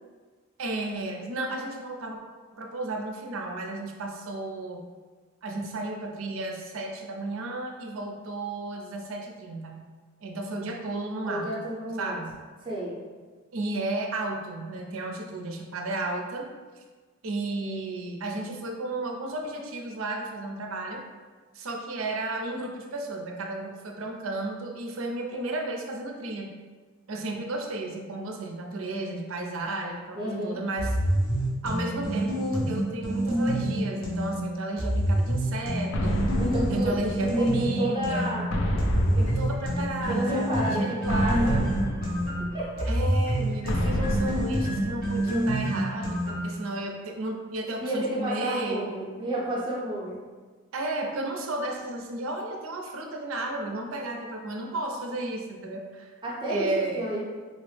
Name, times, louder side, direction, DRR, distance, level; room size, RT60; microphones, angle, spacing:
voice 1, 0.6-2.2 2.5-4.9 5.4-9.9 10.2-11.6 12.0-12.4 13.5-16.5 16.8-16.9 17.2-21.0 21.5-26.5 27.1-31.0 31.6-36.3 36.7-38.3 39.4-41.6 42.9-48.9 50.7-56.1 56.5-57.0, right 2 dB, 80° right, 2 dB, 0.5 m, -33 dB
voice 2, 11.2-12.1 12.6-13.0 30.1-30.6 36.4-38.5 39.0-39.3 40.1-41.6 42.5-42.9 47.7-50.2 56.2-57.2, right 1 dB, 25° right, -6 dB, 0.6 m, -31 dB
sound 1, 30.8-34.3 34.8-38.3 38.8-46.6, right 1 dB, 45° left, 1.1 m, -27 dB
sound 2, 35.9-37.7 38.5-40.2 41.1-42.9 43.7-45.5, equal, 80° left, 0.4 m, -29 dB
4.0 x 2.0 x 3.2 m, 1.4 s
head